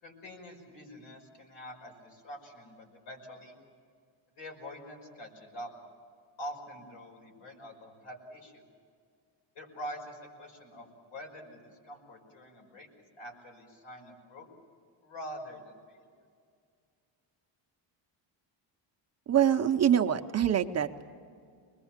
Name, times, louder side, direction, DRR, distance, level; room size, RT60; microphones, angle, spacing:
voice 1, 0.0-3.6 4.4-5.7 6.4-8.6 9.6-12.9 13.2-14.5 15.0-16.1, equal, 75° left, 2 dB, 5.6 m, -45 dB
voice 2, 19.3-21.0, right 9 dB, 35° right, 6 dB, 0.8 m, -25 dB
25.0 x 21.0 x 7.3 m, 2.2 s
cardioid pair, 145°, 46 cm